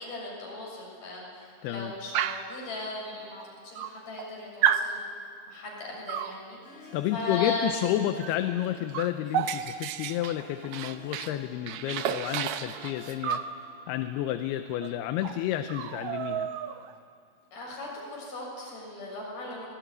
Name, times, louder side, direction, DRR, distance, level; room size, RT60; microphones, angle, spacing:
voice 1, 0.0-5.0 5.5-7.7 17.5-19.7, left 2 dB, 70° left, -3 dB, 9.0 m, -37 dB
voice 2, 1.6-1.9 6.9-13.4 13.9-16.5, left 12 dB, 90° left, 8 dB, 2.8 m, -30 dB
Dog, 2.1-2.6 3.4-3.5 3.8-4.3 4.6-4.9 6.1-6.4 8.2-8.4 8.6-11.4 11.7-13.5 14.8-14.9 15.2-15.4 15.7-16.9, right 9 dB, 85° right, 1.6 m, -31 dB
Harp, 6.5-15.2, left 3 dB, 55° left, 6.0 m, -52 dB
26.0 x 20.0 x 9.6 m, 2.3 s
omnidirectional pair, 4.4 m